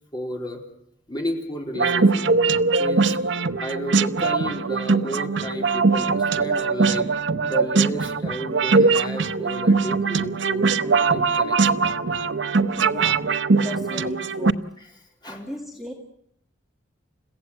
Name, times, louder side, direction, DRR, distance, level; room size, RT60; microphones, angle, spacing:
voice 1, 0.1-0.6 1.1-2.3 2.8-3.2 3.6-7.1 7.4-11.7 15.2-15.4, equal, 25° left, 1 dB, 3.9 m, -32 dB
sound 1, 1.7-14.5, right 4 dB, 70° right, 0.8 m, -21 dB
voice 2, 12.7-13.3 13.6-14.6 15.3-15.9, equal, ahead, 0 dB, 2.0 m, -36 dB
30.0 x 15.5 x 8.3 m, 0.76 s
head